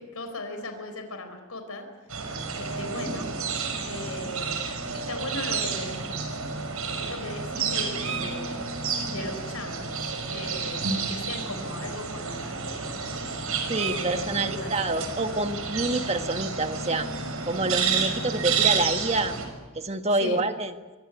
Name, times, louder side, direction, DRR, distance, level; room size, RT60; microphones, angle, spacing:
voice 1, 0.0-1.9 2.6-3.3 3.8-6.0 7.0-8.7 9.1-10.0 10.3-13.0 13.8-14.9 20.2-20.4, left 2 dB, 85° left, 6 dB, 4.4 m, -38 dB
sound 1, 2.1-19.5, right 5 dB, 80° right, 5.9 m, -30 dB
voice 2, 13.7-17.1 17.4-19.3 19.7-20.7, right 2 dB, 30° right, 7 dB, 1.6 m, -27 dB
26.5 x 24.0 x 8.2 m, 1.2 s
head